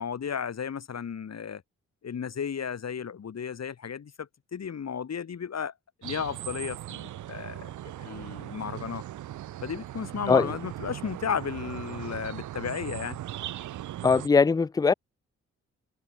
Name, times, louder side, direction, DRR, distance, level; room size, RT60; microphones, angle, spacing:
voice 1, 0.0-1.6 2.0-5.7 6.0-9.0 9.6-13.2, left 7 dB, 60° left, 5.3 m, -34 dB
sound 1, 6.0-14.3, right 13 dB, 90° right, 2.7 m, -39 dB
voice 2, 14.0-14.9, left 5 dB, 15° left, 0.4 m, -21 dB
cardioid pair, 55°, 29 cm